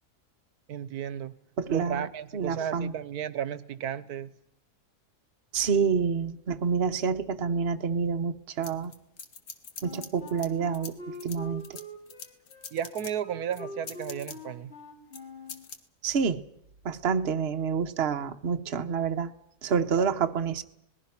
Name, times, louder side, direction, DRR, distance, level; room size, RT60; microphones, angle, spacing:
voice 1, 0.7-1.3 1.7-4.3 12.7-14.7 19.9-20.1, right 9 dB, 70° right, 16 dB, 1.5 m, -34 dB
voice 2, 1.6-2.1 2.3-2.9 5.5-8.9 9.8-10.9 11.2-11.6 16.0-16.4 16.8-19.3 19.6-20.6, right 6 dB, 45° right, 6 dB, 1.2 m, -28 dB
sound 1, 8.6-10.5 10.7-13.1 13.5-14.4 15.1-15.2 15.5-15.8, left 5 dB, 65° left, 2.0 m, -43 dB
Wind instrument woodwind instrument, 9.8-15.7, left 2 dB, 40° left, 4.7 m, -44 dB
26.5 x 20.0 x 6.0 m, 0.77 s
omnidirectional pair, 1.7 m